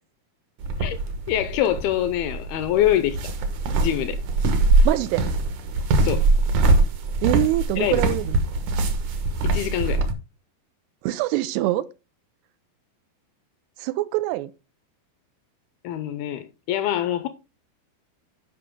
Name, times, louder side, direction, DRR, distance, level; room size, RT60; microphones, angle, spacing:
sound 1, 0.6-10.1, right 2 dB, 65° right, 2.1 m, -22 dB
voice 1, 1.3-3.3 3.8-4.2 6.0-6.3 7.8-8.0 9.4-10.0 15.8-17.3, left 11 dB, 80° left, 2.3 m, -24 dB
voice 2, 4.9-5.3 7.2-8.4 11.0-11.8 13.8-14.5, right 17 dB, 85° right, 2.6 m, -24 dB
11.5 x 5.4 x 3.6 m
omnidirectional pair, 4.8 m